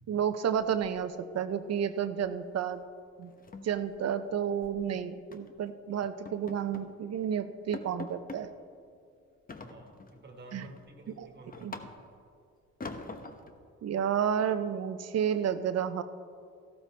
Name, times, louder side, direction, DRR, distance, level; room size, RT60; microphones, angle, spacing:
voice 1, 0.1-2.8 3.2-3.3 3.6-8.5 10.5-10.7 11.2-11.3 11.6-11.7 13.8-16.0, right 8 dB, 55° right, 11 dB, 0.7 m, -31 dB
sound 1, 0.5-1.4 1.6-1.9 2.2-2.4 2.7-2.8 3.2-4.8 5.3-5.6 6.0-7.0 7.3-7.4 7.7-8.5 9.5-10.2 10.6-12.3 12.8-13.6, left 3 dB, 30° left, 0.9 m, -45 dB
voice 2, 9.6-11.9, right 1 dB, 35° right, 2 dB, 1.6 m, -50 dB
14.5 x 12.0 x 3.3 m, 2.3 s
cardioid pair, 90°, 30 cm